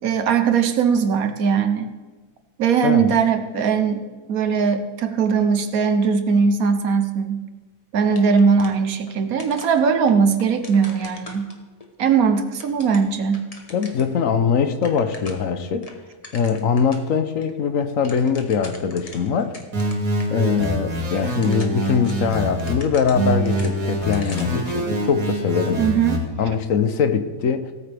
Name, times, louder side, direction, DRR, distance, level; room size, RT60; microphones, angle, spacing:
voice 1, 0.0-1.9 2.6-7.4 7.9-11.5 12.0-13.5 25.8-26.2, right 6 dB, 65° right, 8 dB, 1.3 m, -20 dB
voice 2, 2.8-3.1 13.7-15.9 16.3-19.5 20.3-25.8 26.4-27.7, left 6 dB, 60° left, 9 dB, 1.1 m, -22 dB
sound 1, 8.1-9.1 9.4-11.9 12.3-14.1 14.5-14.6 14.7-15.5 15.8-17.1 17.4-17.5 17.8-20.3 20.6-20.7 21.2-24.7, left 2 dB, 25° left, 1.1 m, -42 dB
sound 2, 19.7-22.7 23.1-26.2, right 1 dB, 85° right, 2.9 m, -25 dB
17.5 x 8.8 x 3.4 m, 1.3 s
omnidirectional pair, 1.7 m